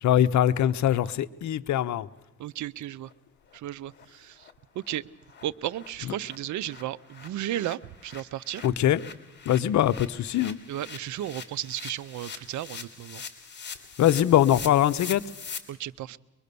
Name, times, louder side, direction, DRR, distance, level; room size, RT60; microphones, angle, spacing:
voice 1, 0.0-2.1 8.6-9.0 9.5-10.6 14.0-15.2, left 11 dB, 70° left, 15 dB, 0.8 m, -22 dB
voice 2, 2.4-3.1 3.5-4.4 4.8-5.1 5.4-8.6 10.7-13.2 15.7-16.2, right 13 dB, 75° right, 18 dB, 0.7 m, -34 dB
sound 1, 2.6-2.7 3.0-3.1 3.5-3.6 3.9-4.1 4.4-4.5 4.8-5.0 5.3-5.4 5.7-15.6, left 6 dB, 35° left, 2.6 m, -43 dB
23.5 x 21.5 x 6.9 m, 1.1 s
cardioid pair, 90°, 30 cm